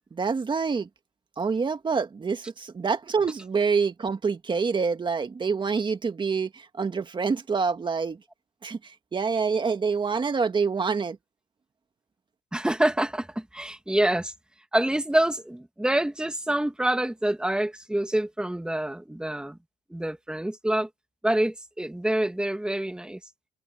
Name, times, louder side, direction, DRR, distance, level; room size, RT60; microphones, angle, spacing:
voice 1, 0.1-0.9 1.4-8.2 8.6-11.2, right 5 dB, 30° right, 1.9 m, -26 dB
voice 2, 12.5-14.3 14.7-19.6 19.9-20.9 21.2-23.2, right 1 dB, 5° right, 2.4 m, -26 dB
cardioid pair, 110°, 17 cm